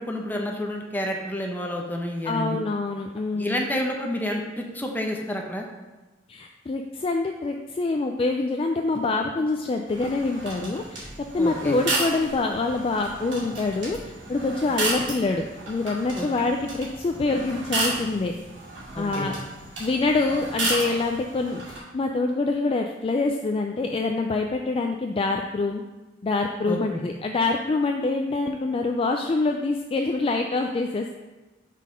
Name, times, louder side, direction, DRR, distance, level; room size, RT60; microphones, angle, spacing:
voice 1, 0.0-2.6 3.3-5.7 11.4-11.8 16.1-16.3 18.9-19.3 26.6-27.0, left 1 dB, 10° left, 1 dB, 0.8 m, -29 dB
voice 2, 2.2-3.6 6.3-11.1 11.3-18.3 19.0-19.3 19.8-25.8 26.2-31.2, left 3 dB, 30° left, 3 dB, 0.3 m, -25 dB
sound 1, 9.9-21.8, right 2 dB, 80° right, 2.2 m, -33 dB
5.5 x 4.2 x 5.0 m, 1.1 s
head